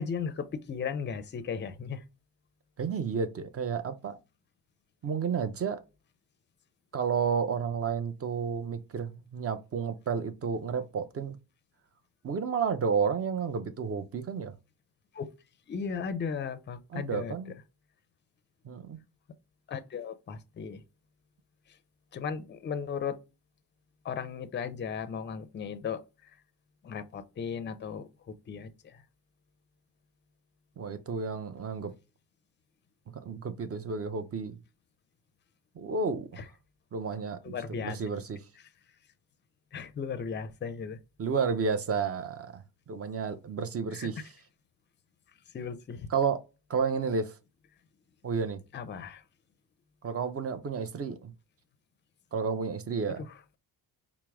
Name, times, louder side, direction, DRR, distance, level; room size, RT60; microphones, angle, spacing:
voice 1, 0.0-2.0 15.1-15.3 15.7-17.3 19.7-20.8 22.1-23.2 24.0-26.0 26.8-28.0 28.5-28.9 36.4-36.5 37.4-38.0 39.7-41.0 43.9-44.1 45.5-46.1 48.7-49.2, left 6 dB, 30° left, 0.5 m, -36 dB
voice 2, 2.8-4.2 5.0-5.8 6.9-11.4 12.2-14.5 16.9-17.5 18.6-19.0 30.8-31.9 33.2-34.6 35.8-36.4 36.9-38.4 41.2-44.3 46.1-46.4 46.7-47.4 48.2-48.6 50.0-51.3 52.3-53.2, right 6 dB, 35° right, 0.6 m, -31 dB
4.5 x 2.0 x 3.4 m
cardioid pair, 105°, 41 cm